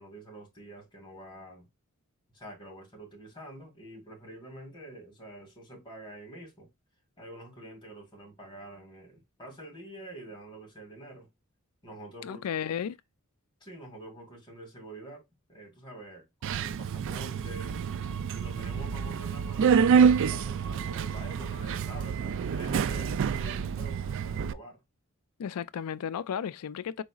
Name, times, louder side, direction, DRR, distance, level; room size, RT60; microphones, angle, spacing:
voice 1, 0.0-1.7 2.3-6.7 7.2-11.3 11.8-12.4 13.6-15.2 15.5-17.8 18.3-24.8, right 1 dB, 20° left, 2.3 m, -47 dB
voice 2, 12.2-13.0 25.4-27.0, left 8 dB, 85° left, 0.4 m, -34 dB
Subway metro underground, 16.4-24.5, right 6 dB, 60° right, 0.3 m, -27 dB
4.6 x 4.1 x 2.3 m
head